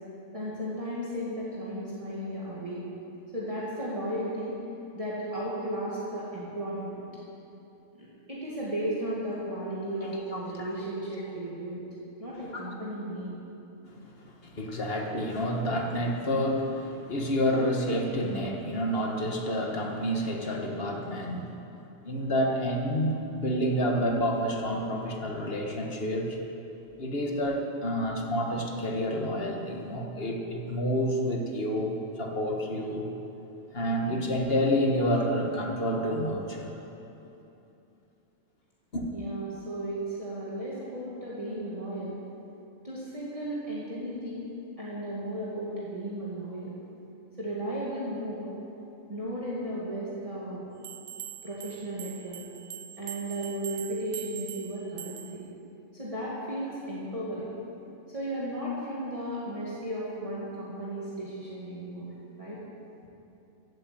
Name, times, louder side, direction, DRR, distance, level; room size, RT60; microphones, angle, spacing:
voice 1, 0.3-2.9 3.3-4.6 4.9-7.0 8.0-11.8 12.2-13.4 39.1-42.2 42.8-44.5 44.8-46.7 47.4-48.5 49.1-50.7 51.4-52.4 53.0-55.4 55.9-57.5 58.1-62.1 62.4-62.6, right 1 dB, 25° right, -8 dB, 2.2 m, -35 dB
voice 2, 10.0-10.7 12.5-12.7 13.9-21.5 22.0-26.4 27.0-33.1 33.7-36.7 38.9-39.1, equal, 45° left, 1 dB, 1.7 m, -29 dB
sound 1, 50.8-55.5, right 11 dB, 75° right, 1.0 m, -42 dB
15.5 x 8.9 x 7.7 m, 2.9 s
omnidirectional pair, 1.4 m